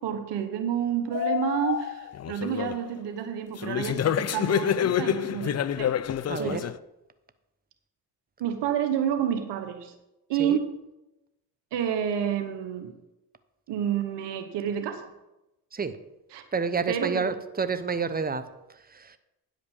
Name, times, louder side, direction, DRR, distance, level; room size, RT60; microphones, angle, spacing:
voice 1, 0.0-5.9 6.4-6.6 8.4-9.9 10.3-10.7 11.7-12.9 13.7-15.1 16.3-16.4 16.9-17.2, right 9 dB, 85° right, 8 dB, 1.1 m, -29 dB
sound 1, 1.1-2.9 3.6-6.8, left 9 dB, 40° left, 0.5 m, -27 dB
voice 2, 6.3-6.6 10.4-10.6 15.7-16.0 16.5-18.4 18.7-19.2, right 5 dB, 20° right, 12 dB, 0.9 m, -29 dB
9.8 x 5.1 x 7.1 m, 0.94 s
supercardioid pair, 50°, 41 cm